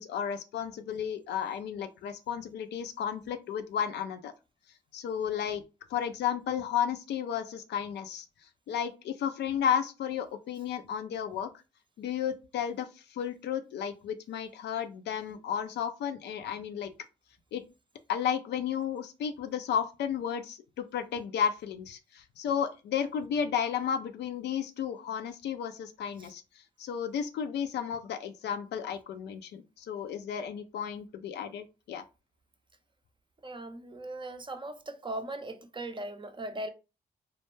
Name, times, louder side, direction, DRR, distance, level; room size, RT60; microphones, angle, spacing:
voice 1, 0.0-4.3 4.9-5.6 5.9-8.3 8.7-11.5 12.0-16.9 17.5-17.6 18.1-26.4 26.8-32.0, left 8 dB, 70° left, 0.4 m, -33 dB
voice 2, 33.4-36.7, right 1 dB, 25° right, 0.5 m, -39 dB
2.2 x 2.1 x 3.1 m
supercardioid pair, 45°, 19 cm